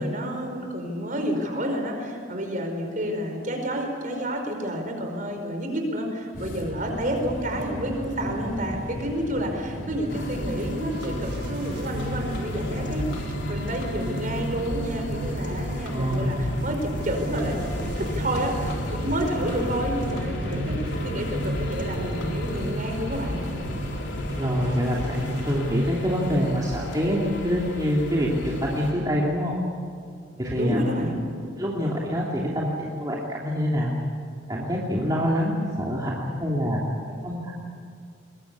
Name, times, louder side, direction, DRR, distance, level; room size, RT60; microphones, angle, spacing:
voice 1, 0.0-20.8 21.0-23.4 30.6-31.2, equal, 45° right, 3 dB, 5.0 m, -29 dB
sound 1, 6.3-25.1, equal, 50° left, 2.9 m, -36 dB
sound 2, 10.1-28.9, equal, 70° left, 3.9 m, -33 dB
sound 3, 10.2-25.6, equal, 70° right, 5.1 m, -40 dB
voice 2, 15.9-16.4 24.4-29.6 30.4-31.0 31.6-33.9 34.5-36.8 37.2-37.5, equal, 20° right, -4 dB, 2.9 m, -26 dB
22.5 x 22.5 x 8.6 m, 2.3 s
head